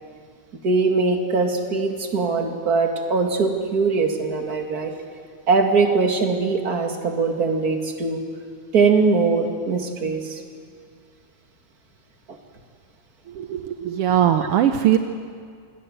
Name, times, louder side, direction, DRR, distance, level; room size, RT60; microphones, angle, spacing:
voice 1, 0.6-4.9 5.5-8.2 8.7-10.4 12.3-12.4 14.4-14.5, right 4 dB, 35° right, 4 dB, 2.3 m, -21 dB
voice 2, 13.3-15.0, right 11 dB, 75° right, 8 dB, 1.4 m, -20 dB
27.0 x 21.0 x 7.8 m, 2.1 s
omnidirectional pair, 3.5 m